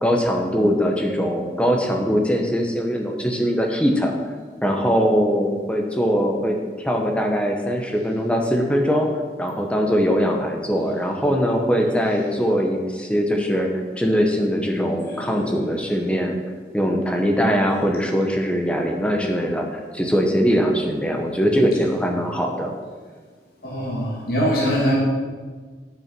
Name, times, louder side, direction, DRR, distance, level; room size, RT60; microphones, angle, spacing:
voice 1, 0.0-4.1 4.6-9.1 9.4-13.7 14.0-16.4 16.7-22.7, equal, 5° left, 2 dB, 0.9 m, -21 dB
voice 2, 14.8-15.7 23.6-24.9, equal, 55° left, -4 dB, 2.5 m, -24 dB
9.2 x 6.7 x 6.1 m, 1.5 s
head